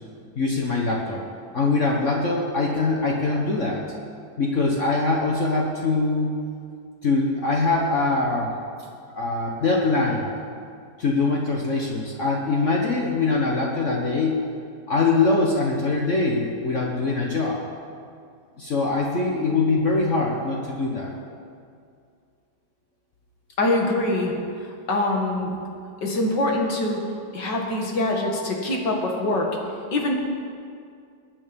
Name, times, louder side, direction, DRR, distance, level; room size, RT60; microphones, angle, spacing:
voice 1, 0.3-1.2 1.5-3.8 4.4-6.3 7.0-8.5 9.2-10.2 11.0-14.3 14.9-17.6 18.6-21.2, left 3 dB, 45° left, -2 dB, 1.6 m, -23 dB
voice 2, 23.6-24.3 24.6-25.5 26.0-27.0 27.3-29.5 29.9-30.1, left 2 dB, 85° left, 0 dB, 2.6 m, -24 dB
22.5 x 9.1 x 5.3 m, 2.3 s
omnidirectional pair, 1.9 m